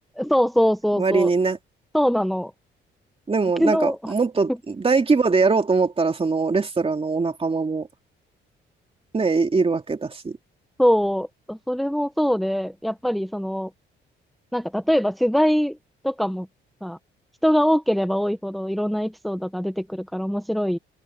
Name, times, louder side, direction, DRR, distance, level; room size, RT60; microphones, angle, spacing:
voice 1, 0.2-1.3 1.9-2.5 3.6-4.1 10.8-13.7 14.5-15.8 16.0-16.5 16.8-17.0 17.4-20.8, equal, ahead, 1.1 m, -22 dB
voice 2, 1.0-1.6 3.3-7.9 9.1-10.4, right 4 dB, 30° right, 2.7 m, -22 dB
open air
cardioid pair, 90°, 20 cm